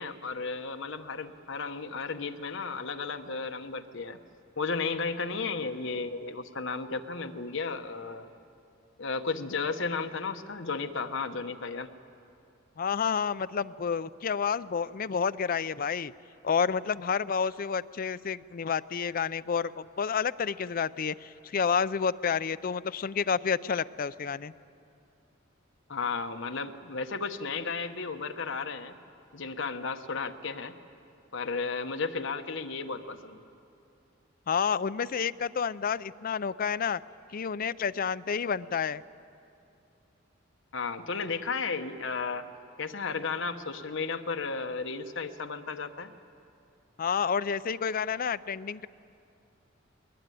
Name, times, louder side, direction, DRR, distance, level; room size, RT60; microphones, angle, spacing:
voice 1, 0.0-4.2 4.6-8.3 9.0-11.9 25.9-28.9 29.3-30.7 31.3-33.4 40.7-42.4 42.8-46.1, left 4 dB, 65° left, 7 dB, 1.1 m, -34 dB
voice 2, 12.8-16.1 16.4-24.5 34.5-37.0 37.3-39.0 47.0-48.9, left 6 dB, 45° left, 15 dB, 0.5 m, -29 dB
21.5 x 21.0 x 9.3 m, 2.6 s
head